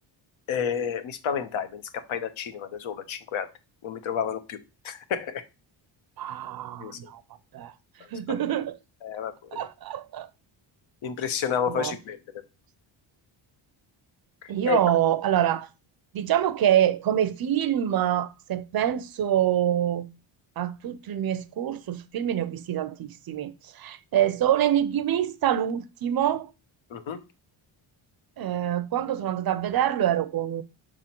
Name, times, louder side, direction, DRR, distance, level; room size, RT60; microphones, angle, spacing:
voice 1, 0.5-1.8 2.1-3.5 3.8-4.6 4.8-5.4 6.8-7.1 8.3-8.4 9.0-9.7 11.0-12.2 14.4-14.8 26.9-27.2, left 7 dB, 70° left, 1.2 m, -30 dB
voice 2, 6.2-7.2 7.5-7.7 8.1-8.8 9.5-10.3 11.7-12.0 14.5-15.7 16.1-20.1 20.6-26.5 28.4-30.6, right 11 dB, 50° right, 0.5 m, -26 dB
6.2 x 3.8 x 4.3 m
cardioid pair, 160°, 49 cm